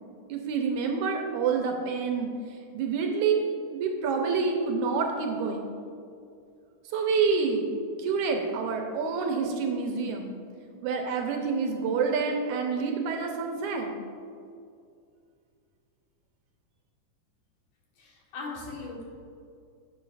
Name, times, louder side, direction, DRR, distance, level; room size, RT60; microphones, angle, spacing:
voice 1, 0.3-2.3 2.7-3.4 3.7-5.7 6.9-7.7 8.0-10.3 10.8-14.0, right 5 dB, 80° right, 3 dB, 2.0 m, -27 dB
voice 2, 18.0-19.0, left 3 dB, 75° left, -3 dB, 2.9 m, -39 dB
11.0 x 7.6 x 2.4 m, 2.4 s
omnidirectional pair, 3.7 m